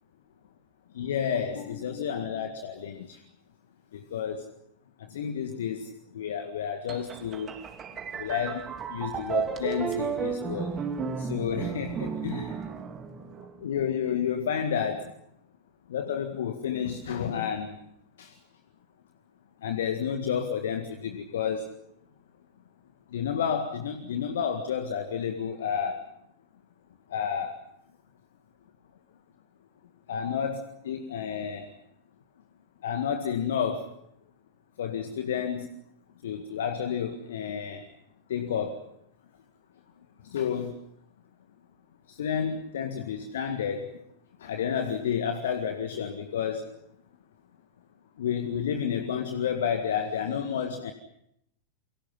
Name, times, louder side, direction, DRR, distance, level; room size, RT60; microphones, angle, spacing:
voice 1, 0.9-3.2 3.9-4.5 5.0-7.6 8.1-10.8 11.2-12.6 13.6-15.1 15.9-17.8 18.2-18.4 19.6-21.7 23.1-26.1 27.1-27.6 30.1-31.7 32.8-33.9 34.8-35.7 36.2-37.9 38.3-38.9 40.2-40.8 42.1-44.0 44.4-46.7 48.2-50.9, left 7 dB, 60° left, 1.8 m, -31 dB
sound 1, 6.9-13.6, right 6 dB, 25° right, 2.9 m, -33 dB
29.5 x 23.5 x 5.7 m
figure-of-eight pair, 90°, 0 cm